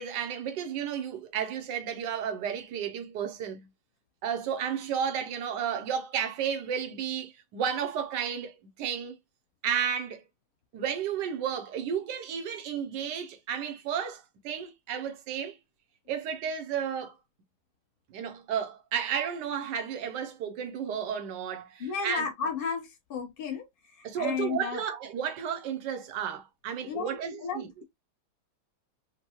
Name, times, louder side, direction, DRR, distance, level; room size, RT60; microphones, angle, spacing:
voice 1, 0.0-3.7 4.2-9.2 9.6-10.2 10.7-15.6 16.1-17.2 18.1-22.3 24.0-27.7, right 8 dB, 65° right, 1.2 m, -32 dB
voice 2, 21.8-23.7 23.9-24.8 26.9-27.8, left 6 dB, 40° left, 0.8 m, -33 dB
4.4 x 2.2 x 2.9 m
omnidirectional pair, 2.2 m